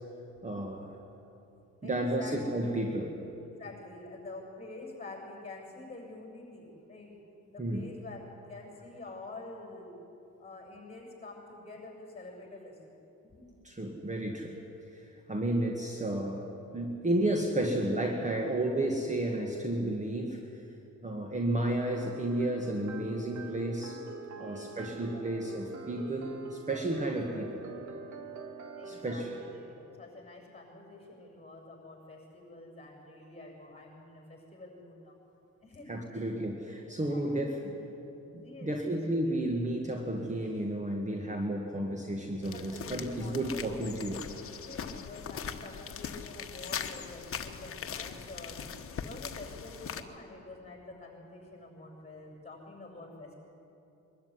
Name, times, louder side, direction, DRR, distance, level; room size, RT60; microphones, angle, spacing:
voice 1, 0.4-1.0 1.8-3.2 7.6-7.9 13.6-14.6 14.9-20.4 21.0-24.0 24.4-27.6 28.9-29.3 35.9-37.9 38.3-44.3, right 1 dB, 25° right, 2 dB, 2.0 m, -32 dB
voice 2, 1.8-2.4 3.4-7.1 7.5-9.9 10.4-12.9 13.3-13.6 24.4-25.3 28.4-28.5 28.8-35.2 35.6-36.4 37.1-37.3 38.4-39.0 42.5-43.4 44.6-53.3, left 2 dB, 20° left, 0 dB, 7.0 m, -48 dB
sound 1, 21.9-29.5, right 4 dB, 70° right, 1.9 m, -45 dB
sound 2, 42.4-50.0, left 7 dB, 45° left, 1.3 m, -40 dB
22.5 x 13.5 x 9.8 m, 2.9 s
cardioid pair, 90°, 30 cm